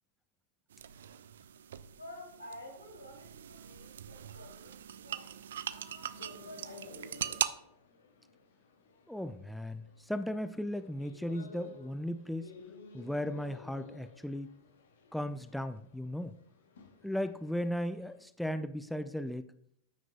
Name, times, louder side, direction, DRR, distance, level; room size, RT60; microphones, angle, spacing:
sound 1, 0.7-7.5, right 9 dB, 60° right, 0.4 m, -40 dB
voice 1, 2.0-7.4, left 1 dB, 85° left, 0 dB, 2.8 m, -51 dB
sound 2, 6.2-18.2, left 4 dB, 65° left, 1.0 m, -54 dB
voice 2, 9.1-12.5 12.9-14.5 15.1-16.3 17.0-19.5, equal, ahead, 12 dB, 0.4 m, -36 dB
14.0 x 6.0 x 2.3 m, 0.72 s
figure-of-eight pair, 90°, 0 cm